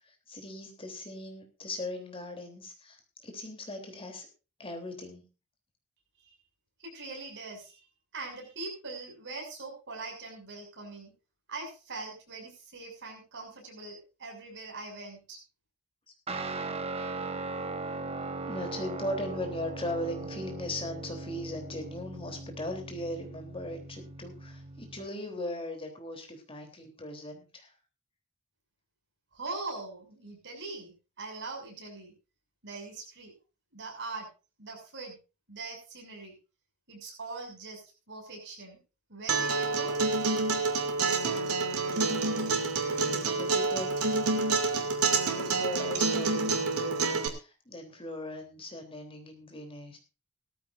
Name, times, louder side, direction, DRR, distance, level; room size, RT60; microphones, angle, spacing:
voice 1, 0.3-3.0 3.2-4.3 4.6-5.2 18.5-27.7 43.0-44.2 45.3-50.0, left 1 dB, 25° left, 4 dB, 3.5 m, -39 dB
voice 2, 6.8-7.8 8.1-11.1 11.5-15.4 29.3-32.1 32.6-33.3 33.7-34.3 34.6-35.2 35.5-36.3 36.9-38.8 39.1-39.9, right 3 dB, 55° right, 2 dB, 6.6 m, -42 dB
Guitar, 16.3-25.1, right 3 dB, 25° right, 1.3 m, -39 dB
Acoustic guitar, 39.3-47.3, right 3 dB, 80° right, 2.7 m, -28 dB
18.0 x 14.0 x 2.6 m, 0.31 s
head